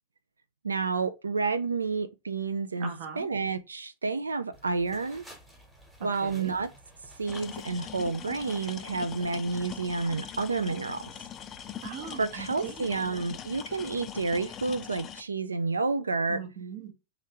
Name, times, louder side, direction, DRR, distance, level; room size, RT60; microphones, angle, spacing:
voice 1, 0.6-2.9 3.2-5.3 6.0-6.7 7.2-11.1 12.2-16.4, right 4 dB, 75° right, 0.3 m, -30 dB
voice 2, 2.8-3.3 6.0-6.5 11.8-12.9 16.3-16.9, right 7 dB, 50° right, 0.8 m, -40 dB
sound 1, 4.5-14.9, equal, 10° right, 1.1 m, -55 dB
sound 2, 7.3-15.2, left 9 dB, 30° left, 0.3 m, -42 dB
3.1 x 2.5 x 2.9 m
figure-of-eight pair, 90°, 0 cm